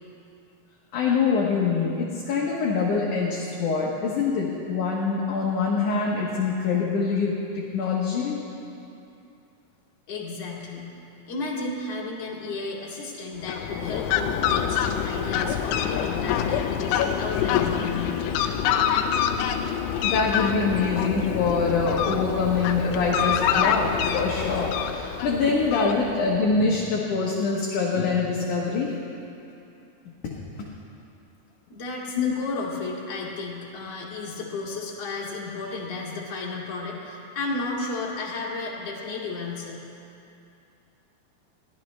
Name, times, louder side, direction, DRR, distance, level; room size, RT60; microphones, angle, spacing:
voice 1, 0.9-8.4 20.0-28.9 32.2-32.3, left 4 dB, 60° left, -4 dB, 2.4 m, -24 dB
voice 2, 10.1-10.9 11.3-18.2 31.7-39.8, left 3 dB, 45° left, -4 dB, 2.9 m, -33 dB
Fowl, 13.4-26.4, left 8 dB, 85° left, 2.8 m, -26 dB
22.5 x 15.5 x 3.2 m, 2.7 s
omnidirectional pair, 4.7 m